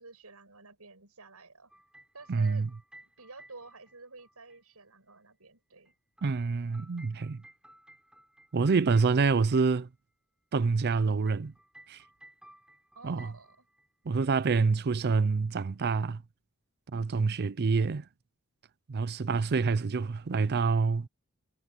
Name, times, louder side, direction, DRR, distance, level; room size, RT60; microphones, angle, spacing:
voice 1, 0.0-1.7 2.1-2.6 3.0-5.9 9.4-9.5 13.0-13.6, right 3 dB, 80° right, 7.5 m, -51 dB
sound 1, 1.7-4.6 5.9-9.6 10.6-13.9 14.1-14.5 15.8-15.9, right 1 dB, 5° right, 7.1 m, -58 dB
voice 2, 2.3-2.7 6.2-7.4 8.5-9.9 10.5-11.5 11.9-12.0 13.0-13.3 14.1-16.2 16.9-18.0 18.9-21.1, right 4 dB, 50° right, 0.5 m, -27 dB
head